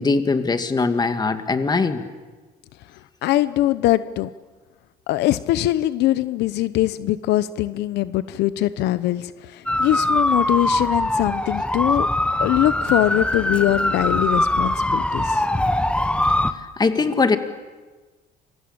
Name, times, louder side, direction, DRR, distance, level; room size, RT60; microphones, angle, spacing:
voice 1, 0.0-2.0 16.8-17.4, left 4 dB, 25° left, 8 dB, 2.4 m, -21 dB
voice 2, 3.2-4.3 5.1-12.1 12.4-15.4, left 15 dB, 85° left, 14 dB, 0.9 m, -22 dB
sound 1, 9.7-16.5, left 1 dB, 5° left, 1.4 m, -22 dB
28.5 x 23.5 x 8.8 m, 1.3 s
cardioid pair, 110°, 17 cm